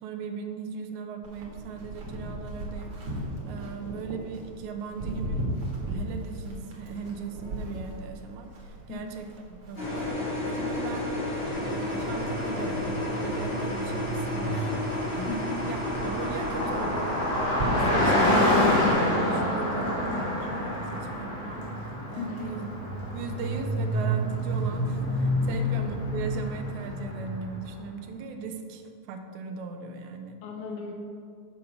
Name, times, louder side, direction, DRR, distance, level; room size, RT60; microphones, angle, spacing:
voice 1, 0.0-3.2 3.5-5.4 5.9-11.2 11.6-17.1 17.5-21.7 22.1-22.7 23.1-30.4, right 5 dB, 85° right, 5 dB, 2.1 m, -38 dB
Livestock farm animals working animals, 1.2-18.9, right 1 dB, 55° right, 2.2 m, -38 dB
sound 1, 9.8-17.4, left 1 dB, 25° left, 1.6 m, -32 dB
Car passing by, 11.5-27.6, left 1 dB, 60° left, 2.5 m, -28 dB
voice 2, 15.2-15.5 22.2-22.5 25.4-25.7 30.4-30.9, left 4 dB, 85° left, 1 dB, 2.2 m, -36 dB
6.9 x 6.7 x 5.2 m, 2.3 s
omnidirectional pair, 3.4 m